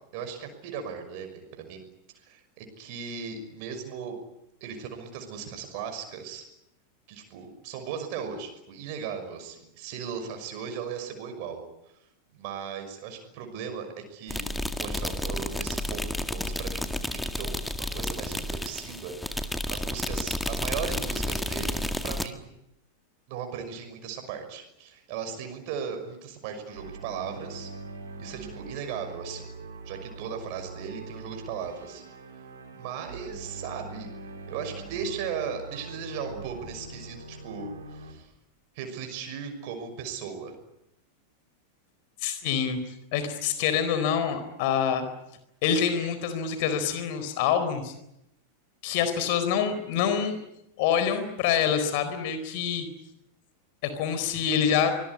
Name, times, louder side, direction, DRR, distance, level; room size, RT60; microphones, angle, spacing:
voice 1, 0.1-1.8 2.2-4.2 4.6-6.4 7.1-11.6 12.3-14.5 14.8-22.5 23.3-27.7 28.2-29.4 29.8-32.0 32.7-34.1 34.5-38.3 38.7-40.5, right 7 dB, 45° right, 6 dB, 6.0 m, -37 dB
sound 1, 14.3-22.3, left 1 dB, 5° left, 1.9 m, -31 dB
sound 2, 26.7-38.1, right 3 dB, 65° right, 4.6 m, -42 dB
voice 2, 42.2-42.8 43.1-45.1 45.6-47.9 48.8-50.4 50.8-52.9 53.8-54.9, left 8 dB, 50° left, 10 dB, 4.2 m, -26 dB
24.5 x 21.0 x 9.8 m, 0.83 s
figure-of-eight pair, 90°, 0 cm